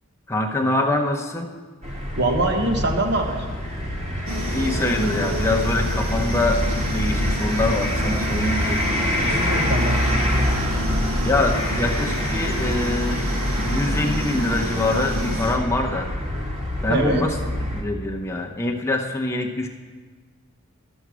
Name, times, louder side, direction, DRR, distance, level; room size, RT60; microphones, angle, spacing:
voice 1, 0.3-1.5 4.1-4.3 4.5-6.6 6.9-9.3 11.2-13.4 13.6-16.1 16.8-17.3 17.7-19.7, left 2 dB, 15° left, 1 dB, 0.8 m, -24 dB
sound 1, 1.8-17.8, left 1 dB, 30° right, 1.7 m, -25 dB
voice 2, 2.2-3.4 9.2-10.0 16.9-17.2, right 2 dB, 55° right, 2 dB, 1.3 m, -23 dB
sound 2, 4.3-15.6, equal, 90° right, 1.6 m, -29 dB
12.0 x 7.1 x 6.2 m, 1.4 s
head